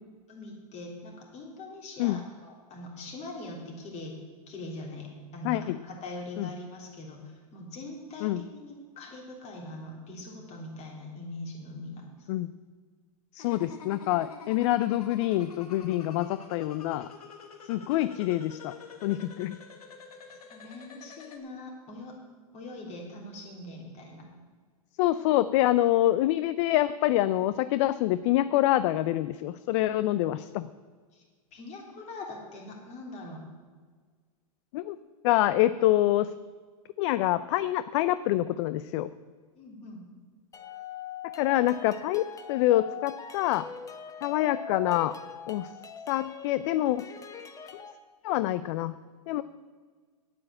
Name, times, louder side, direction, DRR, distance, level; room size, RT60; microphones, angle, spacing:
voice 1, 0.3-4.1 4.5-12.3 20.3-22.2 22.5-24.3 31.1-31.2 31.5-33.4 39.5-40.0, left 2 dB, 35° left, 0 dB, 3.5 m, -42 dB
voice 2, 5.4-5.8 6.4-6.5 8.2-8.4 12.3-12.5 13.3-17.1 17.6-18.7 19.0-19.6 25.0-30.7 34.7-35.0 35.2-36.3 37.0-39.1 41.4-43.7 44.2-45.1 45.5-45.7 46.1-47.0 47.7-47.9 48.2-48.9 49.3-49.4, left 14 dB, 55° left, 15 dB, 0.4 m, -26 dB
sound 1, 13.4-21.4, left 5 dB, 85° left, 1.6 m, -48 dB
sound 2, 40.5-47.9, left 6 dB, 20° left, 0.9 m, -42 dB
8.9 x 8.7 x 8.9 m, 1.5 s
hypercardioid pair, 115°, 19 cm